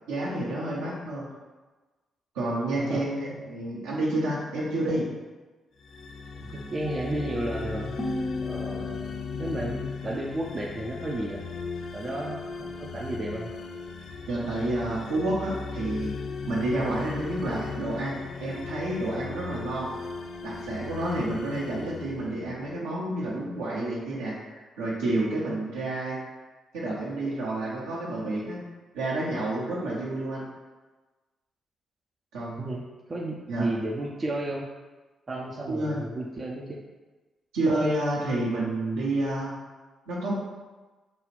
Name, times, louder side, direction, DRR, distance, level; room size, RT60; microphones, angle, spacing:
voice 1, 0.1-1.3 2.3-5.1 14.3-16.1 16.5-19.9 20.4-26.2 26.7-28.6 28.9-30.5 32.3-32.6 33.5-33.7 35.7-36.0 37.5-39.5 40.1-40.3, right 1 dB, 75° right, -5 dB, 1.0 m, -29 dB
sound 1, 5.8-22.9, left 4 dB, 55° left, 0.3 m, -37 dB
voice 2, 6.4-8.0 8.4-11.4 11.9-13.5 32.6-34.7 35.3-36.8, right 1 dB, 35° right, -1 dB, 0.5 m, -33 dB
sound 2, 8.0-11.0, left 2 dB, 25° left, 0.7 m, -37 dB
5.1 x 2.4 x 3.3 m, 1.2 s
hypercardioid pair, 40°, 0 cm